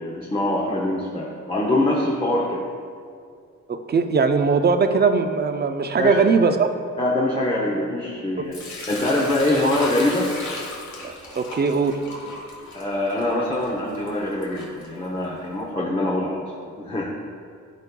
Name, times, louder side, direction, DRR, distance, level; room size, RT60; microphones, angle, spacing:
voice 1, 0.0-2.6 5.8-6.2 7.0-8.6 8.9-10.3 12.7-17.1, left 1 dB, 20° left, -3 dB, 0.7 m, -24 dB
voice 2, 3.7-6.7 8.4-8.5 11.0-12.0, right 5 dB, 35° right, 7 dB, 0.4 m, -20 dB
Sink (filling or washing) / Liquid, 8.5-15.4, left 2 dB, 65° left, 1.5 m, -37 dB
13.0 x 5.1 x 2.2 m, 2.3 s
wide cardioid pair, 120°, 31 cm